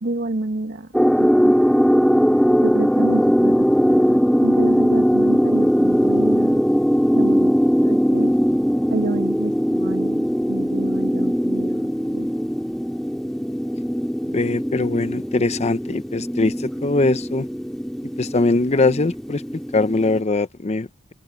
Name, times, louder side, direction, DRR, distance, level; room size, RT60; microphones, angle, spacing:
voice 1, 0.0-0.9 1.2-1.5 2.6-6.6 7.1-7.5 7.8-8.3 8.9-12.3, right 2 dB, 50° right, 1.2 m, -29 dB
sound 1, 0.9-20.2, equal, ahead, 2.1 m, -20 dB
voice 2, 14.3-17.5 18.2-19.4 19.7-21.1, left 2 dB, 30° left, 0.7 m, -21 dB
open air
head